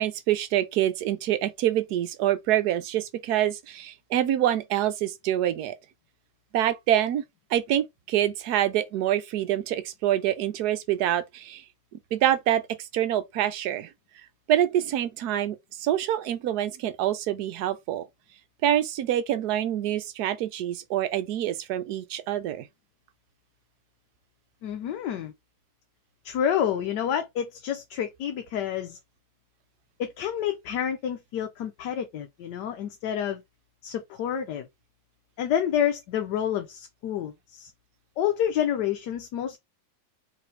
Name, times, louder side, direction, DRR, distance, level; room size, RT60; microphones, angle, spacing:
voice 1, 0.0-5.7 6.5-7.2 7.5-11.6 12.1-13.9 14.5-18.0 18.6-22.7, right 12 dB, 65° right, 1.2 m, -26 dB
voice 2, 24.6-25.3 26.2-29.0 30.0-33.4 33.8-34.7 35.4-37.7 38.2-39.6, left 9 dB, 75° left, 1.3 m, -28 dB
4.7 x 3.3 x 3.2 m
omnidirectional pair, 1.9 m